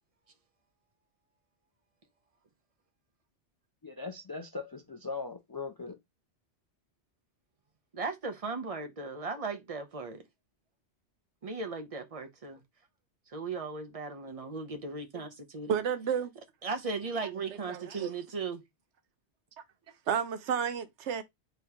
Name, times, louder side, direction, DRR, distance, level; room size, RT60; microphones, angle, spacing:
voice 1, 3.8-6.0, left 4 dB, 35° left, 0.3 m, -39 dB
voice 2, 7.9-10.2 11.4-12.6 13.3-15.7 16.6-18.6, right 4 dB, 35° right, 0.8 m, -37 dB
voice 3, 15.7-16.3 17.7-18.1 19.6-19.7 20.1-21.2, right 7 dB, 80° right, 1.0 m, -31 dB
3.9 x 3.8 x 2.9 m
omnidirectional pair, 1.2 m